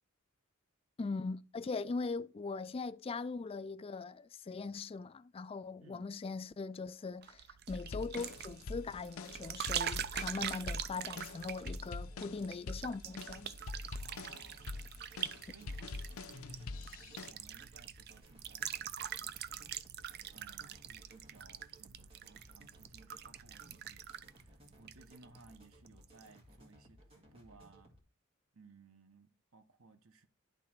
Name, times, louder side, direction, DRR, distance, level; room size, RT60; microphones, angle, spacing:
voice 1, 1.0-13.5, left 4 dB, 25° left, 0.3 m, -40 dB
sound 1, 7.2-25.6 25.9-26.3, right 10 dB, 50° right, 0.4 m, -44 dB
sound 2, 7.7-17.3, left 3 dB, 80° left, 0.6 m, -45 dB
sound 3, 8.1-28.0, equal, 30° right, 1.8 m, -61 dB
voice 2, 14.0-14.8 15.4-20.0 20.3-27.9 28.5-30.3, right 3 dB, 80° right, 1.0 m, -61 dB
10.5 x 3.8 x 4.4 m
head